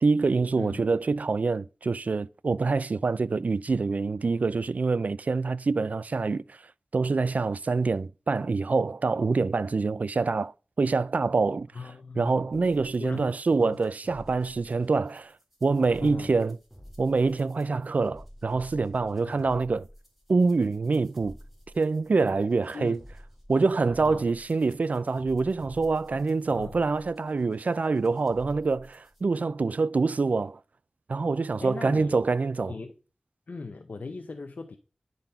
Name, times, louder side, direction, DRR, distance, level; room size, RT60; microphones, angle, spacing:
voice 1, 0.0-6.6 6.9-11.7 12.2-15.3 15.6-16.6 17.0-19.9 20.3-21.4 21.7-23.0 23.5-30.6 31.1-32.7, right 4 dB, 65° right, 0.3 m, -26 dB
voice 2, 11.7-12.4 13.0-13.8 16.0-16.4 19.2-19.4 22.7-22.9 24.0-24.3 26.5-26.8 31.6-32.2 32.6-32.9 33.5-34.8, left 4 dB, 80° left, 0.7 m, -39 dB
sound 1, 12.5-29.2, equal, 5° right, 2.0 m, -51 dB
10.5 x 4.0 x 5.5 m
wide cardioid pair, 60°, 3 cm